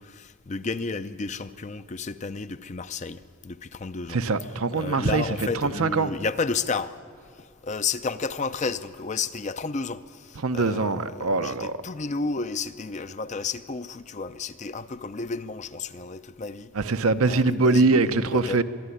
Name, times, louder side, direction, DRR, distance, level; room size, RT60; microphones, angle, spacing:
voice 1, 0.0-4.2 4.7-7.0 7.4-16.7 17.3-18.6, left 4 dB, 35° left, 0.5 m, -32 dB
voice 2, 4.1-6.1 10.4-11.8 16.7-18.6, right 3 dB, 75° right, 0.8 m, -23 dB
24.5 x 11.5 x 9.9 m
head